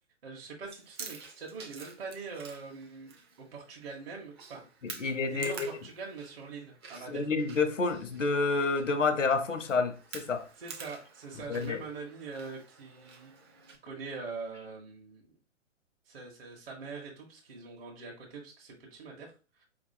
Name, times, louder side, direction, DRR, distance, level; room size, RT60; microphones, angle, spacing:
voice 1, 0.2-4.6 4.9-7.3 10.6-13.3 13.7-15.4 16.1-19.6, right 4 dB, 50° right, 1.2 m, -43 dB
Chewing mastication, 0.6-13.8, right 5 dB, 20° right, 0.5 m, -49 dB
voice 2, 4.8-5.7 7.1-10.5 11.5-11.8, left 4 dB, 85° left, 0.8 m, -29 dB
4.7 x 2.9 x 2.7 m
figure-of-eight pair, 125°, 37 cm